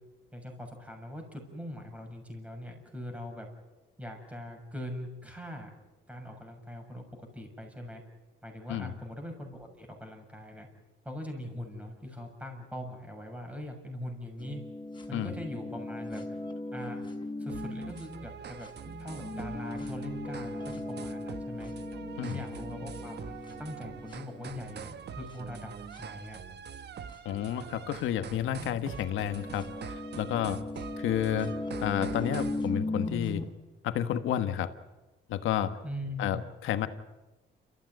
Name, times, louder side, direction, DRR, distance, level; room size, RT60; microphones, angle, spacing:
voice 1, 0.3-3.5 4.0-5.7 6.1-8.0 8.4-10.7 11.1-14.6 15.1-16.2 16.7-17.0 17.4-18.7 19.0-21.7 22.2-26.4 35.8-36.5, left 1 dB, 5° right, 3 dB, 7.0 m, -41 dB
sound 1, 14.4-18.3 18.6-24.7 25.3-25.4 25.9-26.0 27.1-27.2 28.0-28.1 28.9-33.4, left 2 dB, 25° left, 5.2 m, -38 dB
sound 2, 17.5-32.7, right 7 dB, 55° right, 1.2 m, -44 dB
voice 2, 27.2-29.6 30.2-30.6 31.0-31.5 31.8-33.4 33.8-34.7 35.3-35.7 36.2-36.9, left 11 dB, 90° left, 9 dB, 1.5 m, -30 dB
28.5 x 15.0 x 9.7 m, 1.1 s
cardioid pair, 90°, 20 cm